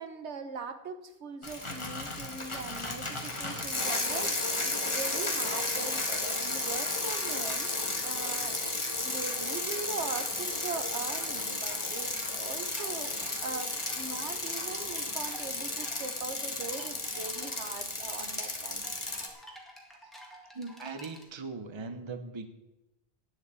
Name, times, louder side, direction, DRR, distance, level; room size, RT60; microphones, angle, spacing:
voice 1, 0.0-8.6 9.0-18.9, right 4 dB, 75° right, 9 dB, 1.3 m, -41 dB
Bicycle, 1.4-19.3, left 2 dB, 25° left, 1.6 m, -33 dB
sound 1, 10.5-21.2, equal, ahead, 1.9 m, -52 dB
voice 2, 20.5-22.5, right 4 dB, 25° right, 9 dB, 0.8 m, -39 dB
9.6 x 7.6 x 8.3 m, 0.94 s
omnidirectional pair, 1.2 m